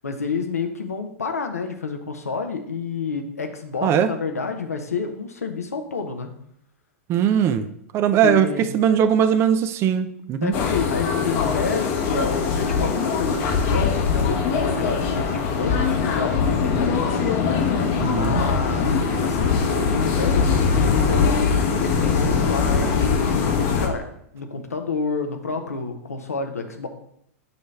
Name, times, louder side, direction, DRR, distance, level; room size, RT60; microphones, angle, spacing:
voice 1, 0.0-6.3 8.2-8.8 10.4-17.5 18.1-24.1 24.3-26.9, left 4 dB, 80° left, 5 dB, 0.8 m, -29 dB
voice 2, 7.1-7.7 7.9-10.6 18.0-18.4, right 8 dB, 30° right, 11 dB, 0.5 m, -20 dB
sound 1, 10.5-23.9, left 5 dB, 45° left, 0.9 m, -22 dB
6.7 x 3.1 x 5.4 m, 0.72 s
figure-of-eight pair, 100°, 8 cm